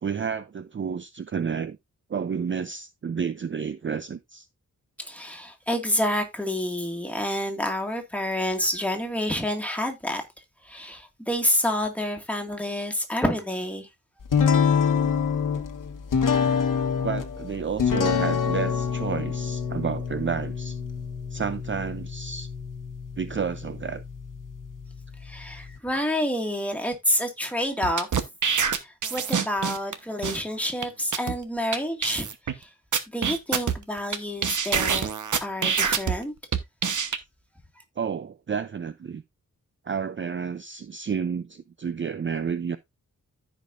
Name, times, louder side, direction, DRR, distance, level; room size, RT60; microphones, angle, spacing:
voice 1, 0.0-1.8 2.1-4.5 17.0-20.8 21.3-22.5 23.2-24.0 38.0-39.2 39.8-42.8, right 6 dB, 40° right, 0.5 m, -30 dB
voice 2, 5.0-10.2 10.6-13.9 25.2-28.1 28.8-32.3 32.5-32.7 33.1-35.1 35.4-36.3, left 1 dB, 5° left, 1.9 m, -28 dB
sound 1, 14.3-25.8, left 6 dB, 80° left, 1.2 m, -27 dB
sound 2, 27.8-29.9 30.2-30.4 30.8-30.9 31.1-31.3 31.7-31.8 32.0-32.5 32.9-34.2 34.4-36.1 36.5-37.2, right 7 dB, 65° right, 1.1 m, -25 dB
14.5 x 5.1 x 2.5 m
wide cardioid pair, 125°, 32 cm